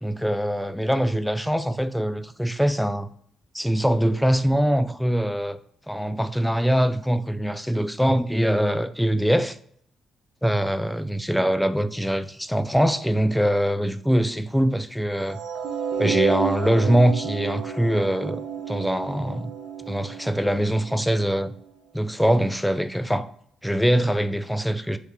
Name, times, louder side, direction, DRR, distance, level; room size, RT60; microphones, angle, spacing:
voice 1, 0.0-3.1 3.5-5.6 5.9-9.6 10.4-15.4 16.0-18.4 18.7-19.5 19.9-21.5 21.9-23.3 23.6-25.0, equal, ahead, 0.3 m, -23 dB
sound 1, 15.3-21.5, right 7 dB, 85° right, 0.7 m, -31 dB
3.4 x 2.7 x 4.6 m
cardioid pair, 90°, 0 cm